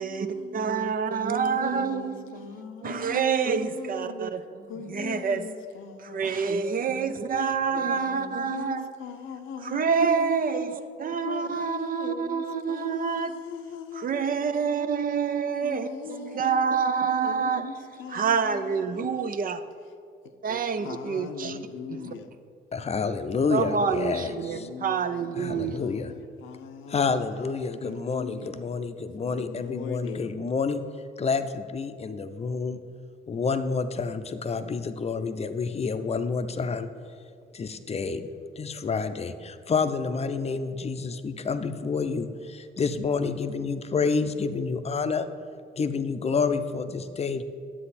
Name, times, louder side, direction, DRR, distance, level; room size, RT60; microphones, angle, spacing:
voice 1, 0.0-0.7 1.4-4.2 4.7-6.7 7.7-10.1 11.2-14.3 15.6-16.9 17.2-19.4 20.2-20.3 20.7-22.3 23.7-27.3 27.8-28.5 29.3-30.3, left 6 dB, 85° left, 0.7 m, -40 dB
voice 2, 0.5-2.4 2.8-5.4 6.0-8.9 9.6-13.3 14.0-17.7 18.1-19.6 20.4-21.6 23.5-25.8, right 6 dB, 45° right, 0.6 m, -27 dB
voice 3, 22.7-24.7 25.4-26.1 26.9-30.8 31.2-32.8 33.3-36.9 37.5-38.3 38.6-45.3 45.8-47.4, left 5 dB, 30° left, 0.6 m, -29 dB
9.7 x 7.7 x 4.2 m
cardioid pair, 90°, 20 cm